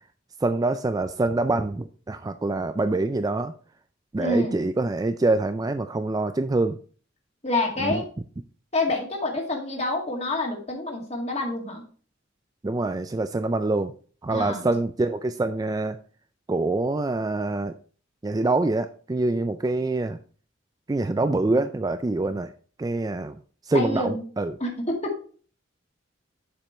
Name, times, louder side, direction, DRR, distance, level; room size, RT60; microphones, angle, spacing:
voice 1, 0.4-3.5 4.1-6.8 7.8-8.0 12.6-13.9 14.2-16.0 16.5-17.7 18.2-20.2 20.9-22.5 22.8-23.4 23.7-24.5, right 2 dB, 20° right, 9 dB, 0.3 m, -25 dB
voice 2, 4.2-4.7 7.4-8.1 8.7-11.8 14.3-14.7 23.7-24.3 24.6-25.2, left 2 dB, 35° left, 1 dB, 2.0 m, -27 dB
7.5 x 5.2 x 4.2 m, 0.41 s
head